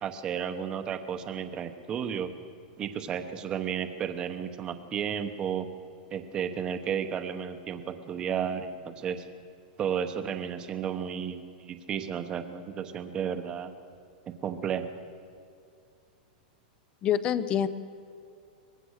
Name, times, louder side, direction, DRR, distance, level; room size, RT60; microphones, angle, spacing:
voice 1, 0.0-2.3 2.8-5.7 6.1-9.2 9.8-13.7 14.3-14.9, right 8 dB, 15° right, 8 dB, 1.0 m, -33 dB
voice 2, 17.0-17.7, left 9 dB, 20° left, 15 dB, 0.6 m, -26 dB
24.0 x 19.5 x 6.5 m, 2.5 s
supercardioid pair, 175°, 5 cm